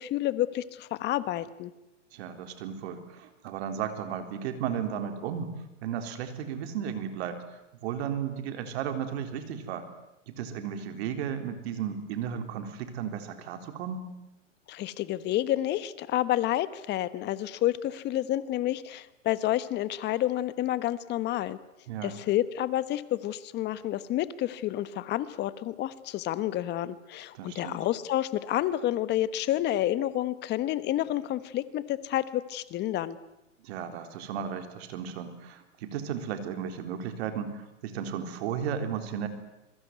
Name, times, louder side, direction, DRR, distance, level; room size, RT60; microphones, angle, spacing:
voice 1, 0.0-1.7 14.7-21.6 22.0-33.2, left 13 dB, 25° left, 15 dB, 1.3 m, -29 dB
voice 2, 2.1-5.5 5.8-7.4 7.8-9.9 10.3-14.1 21.9-22.1 27.3-27.8 33.6-39.3, right 8 dB, 55° right, 7 dB, 3.9 m, -34 dB
26.5 x 22.0 x 9.4 m, 0.91 s
hypercardioid pair, 135°, 39 cm